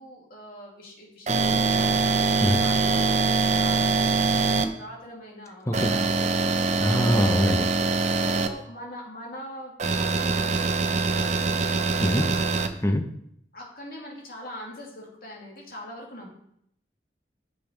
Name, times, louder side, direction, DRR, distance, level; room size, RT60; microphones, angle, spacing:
voice 1, 0.0-7.0 7.6-12.6 13.5-16.3, equal, 55° left, -2 dB, 2.5 m, -42 dB
sound 1, 1.3-4.6 5.7-8.5 9.8-12.7, right 4 dB, 40° right, 0.7 m, -23 dB
voice 2, 6.8-7.7 12.0-12.3 12.8-13.1, equal, 15° left, 6 dB, 0.7 m, -23 dB
9.1 x 6.2 x 5.1 m, 0.74 s
head